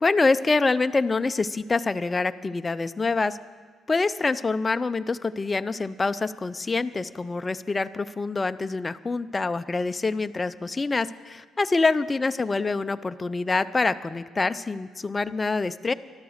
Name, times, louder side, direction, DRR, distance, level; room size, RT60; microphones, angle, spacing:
voice 1, 0.0-3.4 3.9-15.9, left 3 dB, 20° left, 12 dB, 0.4 m, -25 dB
12.0 x 12.0 x 6.4 m, 1.5 s
cardioid pair, 130°, 0 cm